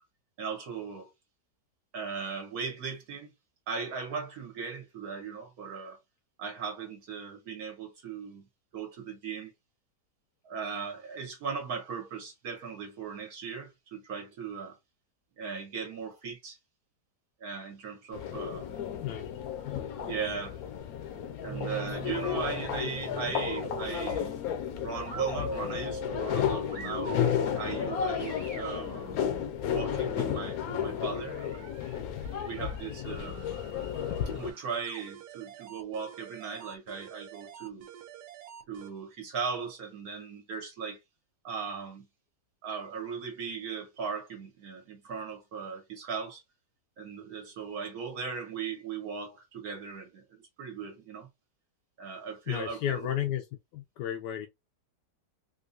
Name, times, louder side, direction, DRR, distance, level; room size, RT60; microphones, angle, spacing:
voice 1, 0.4-1.1 1.9-3.3 3.7-6.0 6.4-8.4 8.7-9.5 10.4-14.8 15.4-16.6 17.4-18.7 20.0-20.6 21.4-24.4 24.7-27.2 27.6-29.2 29.7-31.7 32.5-33.5 34.4-37.9 38.7-41.0 41.4-42.1 42.6-46.4 47.0-51.3 52.0-53.1, right 6 dB, 65° right, 1.2 m, -38 dB
sound 1, 18.1-34.5, left 8 dB, 70° left, 1.0 m, -33 dB
sound 2, 21.4-30.0, right 1 dB, 25° right, 1.0 m, -42 dB
sound 3, 31.2-38.9, right 9 dB, 85° right, 1.2 m, -50 dB
voice 2, 52.5-53.5 53.7-54.5, left 11 dB, 85° left, 1.2 m, -32 dB
3.7 x 2.6 x 2.5 m
omnidirectional pair, 1.8 m